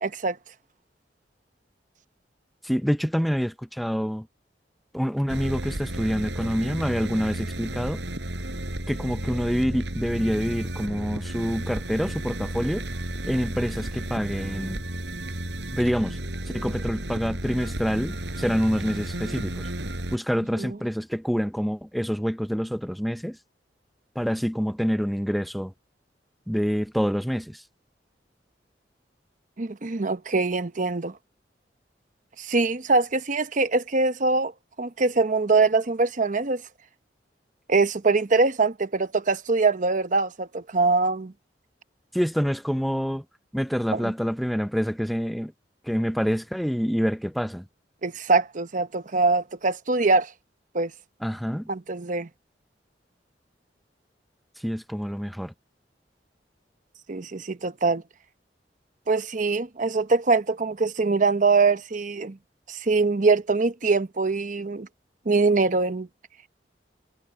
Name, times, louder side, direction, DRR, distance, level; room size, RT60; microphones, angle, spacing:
voice 1, 0.0-0.4 20.6-20.8 29.6-31.1 32.4-34.5 34.8-36.6 37.7-41.3 44.0-44.1 48.0-50.3 50.7-50.9 51.7-52.3 57.1-58.0 59.1-62.4 62.7-64.9 65.3-66.1, right 3 dB, 45° right, 0.9 m, -23 dB
voice 2, 2.6-4.3 4.9-8.0 8.9-12.9 13.2-14.8 15.7-16.2 16.5-19.7 20.1-23.4 24.2-25.7 26.5-27.6 42.1-43.2 43.5-45.5 45.8-47.6 51.2-51.7 54.6-55.5, equal, ahead, 0.5 m, -27 dB
sound 1, 5.3-20.2, right 1 dB, 75° right, 4.8 m, -33 dB
head